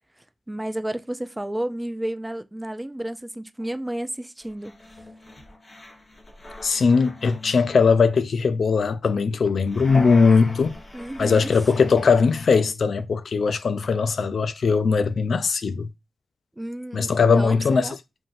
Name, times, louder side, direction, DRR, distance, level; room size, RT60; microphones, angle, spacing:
voice 1, 0.5-4.7 10.9-11.5 16.6-18.0, right 1 dB, 15° right, 0.4 m, -31 dB
sound 1, 3.6-3.7 4.4-7.8 9.4-12.5, left 2 dB, 35° left, 1.1 m, -39 dB
voice 2, 6.6-10.8 11.2-15.9 16.9-17.9, left 5 dB, 70° left, 0.4 m, -20 dB
5.6 x 2.6 x 2.5 m
cardioid pair, 75°, 0 cm